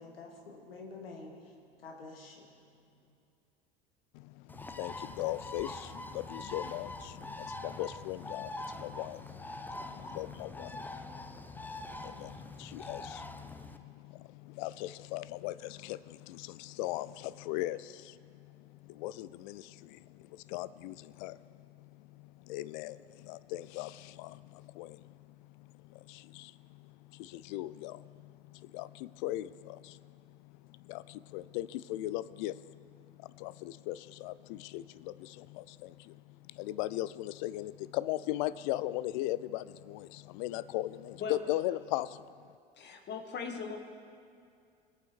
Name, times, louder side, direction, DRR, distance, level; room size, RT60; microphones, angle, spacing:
voice 1, 0.0-3.1, left 3 dB, 75° left, 1 dB, 2.1 m, -49 dB
voice 2, 4.1-21.4 21.8-25.1 25.6-30.1 30.7-32.8 33.2-36.2 36.5-42.2, left 15 dB, 55° left, 17 dB, 0.5 m, -39 dB
Bird, 4.5-13.8, left 2 dB, 5° left, 0.6 m, -44 dB
voice 3, 42.8-43.8, left 5 dB, 35° left, 5 dB, 1.7 m, -39 dB
21.0 x 8.8 x 4.6 m, 2.3 s
figure-of-eight pair, 75°, 29 cm